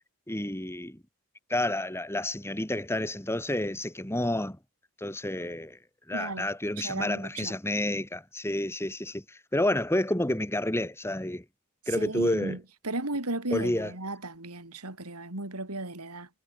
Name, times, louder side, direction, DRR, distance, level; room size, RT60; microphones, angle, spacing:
voice 1, 0.3-1.0 1.5-4.6 5.0-5.8 6.1-11.4 11.9-12.6 13.5-13.9, left 1 dB, 10° left, 2.4 m, -29 dB
voice 2, 6.1-6.5 6.8-7.6 11.9-16.3, right 2 dB, 90° right, 5.0 m, -35 dB
head